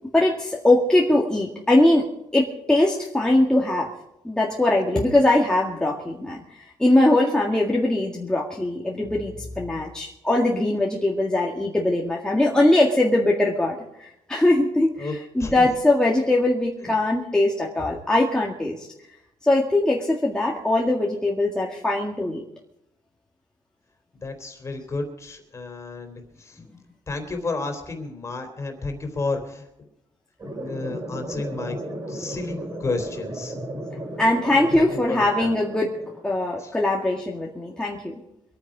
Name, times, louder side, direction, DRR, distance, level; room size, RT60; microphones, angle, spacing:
voice 1, 0.1-3.9 4.2-18.9 19.4-22.4 34.2-36.0 36.2-38.2, left 1 dB, 5° left, -3 dB, 1.9 m, -21 dB
voice 2, 15.4-15.7 16.8-16.9 24.2-26.6 27.1-29.7 30.6-31.7 32.1-33.5 34.6-35.5 36.6-36.7, left 3 dB, 25° left, 5 dB, 3.3 m, -32 dB
sound 1, 30.4-36.4, right 1 dB, 35° right, 4.6 m, -35 dB
24.5 x 9.4 x 5.0 m, 0.83 s
cardioid pair, 120°, 11 cm